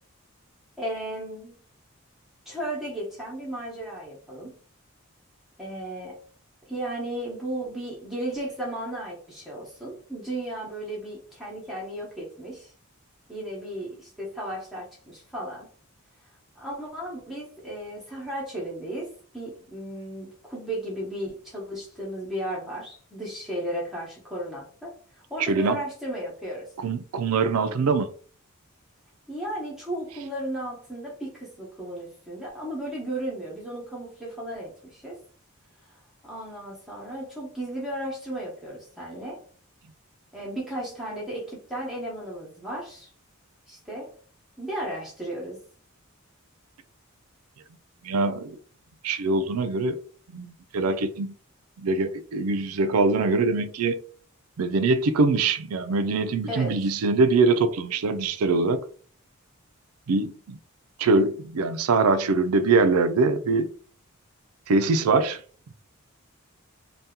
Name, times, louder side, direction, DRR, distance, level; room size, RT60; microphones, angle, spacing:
voice 1, 0.8-1.5 2.5-4.6 5.6-6.2 6.7-12.7 13.3-15.7 16.5-26.7 29.3-35.2 36.2-39.4 40.3-43.1 43.7-44.1 44.6-45.6 56.5-56.8, right 1 dB, ahead, 0.9 m, -35 dB
voice 2, 25.4-25.8 26.8-28.1 48.0-48.6 49.0-50.0 50.3-51.3 51.8-54.0 54.6-58.8 60.1-60.6 61.0-63.7 64.7-65.4, right 3 dB, 90° right, 0.4 m, -23 dB
2.8 x 2.3 x 3.5 m
head